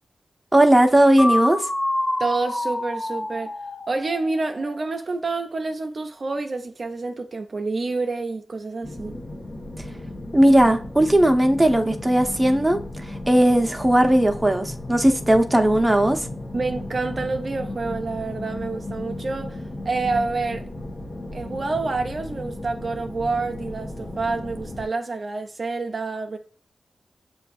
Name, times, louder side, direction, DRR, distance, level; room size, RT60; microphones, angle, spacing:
voice 1, 0.5-1.6 10.3-12.8 13.3-16.3, right 1 dB, 10° right, 0.8 m, -17 dB
sound 1, 1.2-5.0, left 1 dB, 20° left, 0.6 m, -27 dB
voice 2, 2.2-3.5 3.9-9.2 16.5-20.7 21.3-26.4, right 3 dB, 55° right, 0.5 m, -28 dB
sound 2, 8.8-24.9, left 1 dB, 60° left, 1.1 m, -35 dB
7.1 x 2.6 x 2.4 m
cardioid pair, 65°, 0 cm